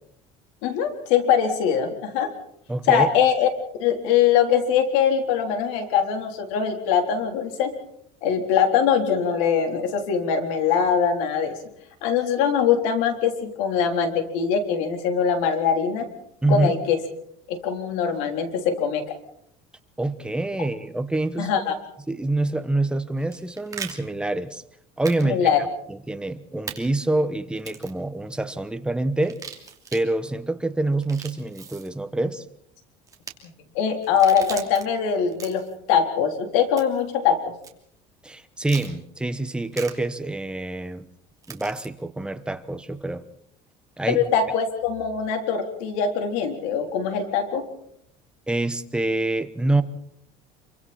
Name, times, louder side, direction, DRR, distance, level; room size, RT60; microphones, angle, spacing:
voice 1, 0.6-2.3 2.9-3.5 3.8-7.7 8.2-11.5 12.0-16.1 16.5-17.0 17.5-19.2 21.4-21.8 25.2-25.6 33.4-37.5 44.1-47.6, left 7 dB, 85° left, 5 dB, 3.7 m, -22 dB
voice 2, 2.7-3.1 16.4-16.7 20.0-21.5 22.1-24.6 25.0-25.5 25.9-29.5 29.9-32.4 38.2-41.1 41.5-43.2 44.0-44.2 48.5-49.8, right 2 dB, 5° right, 10 dB, 1.1 m, -26 dB
sound 1, 23.2-23.9 25.0-25.2 25.5-25.6 26.7-26.8 27.6-28.0 29.2-30.0 30.9-31.9 33.1-33.3 34.0-34.8 35.3-35.8 36.8-37.1 37.6-37.7 38.6-38.9 39.7-39.9 41.4-41.9, right 6 dB, 20° right, 2.9 m, -38 dB
27.0 x 24.0 x 4.3 m, 0.71 s
cardioid pair, 140°, 16 cm